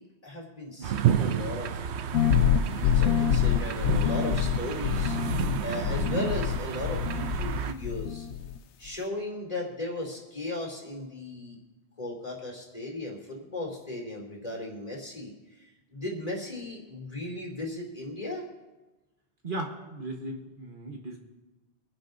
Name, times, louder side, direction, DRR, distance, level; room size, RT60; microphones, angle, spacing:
voice 1, 0.0-1.8 2.5-5.2 5.6-8.3 8.8-11.6 12.0-15.3 15.9-18.4, left 2 dB, 35° left, -2 dB, 3.0 m, -36 dB
sound 1, 0.8-7.7, right 9 dB, 75° right, 0.9 m, -31 dB
sound 2, 2.1-7.6 7.8-8.6, left 9 dB, 80° left, 0.9 m, -26 dB
voice 2, 19.4-21.2, right 1 dB, 50° right, 1 dB, 1.4 m, -37 dB
24.5 x 11.0 x 2.7 m, 1.1 s
omnidirectional pair, 1.2 m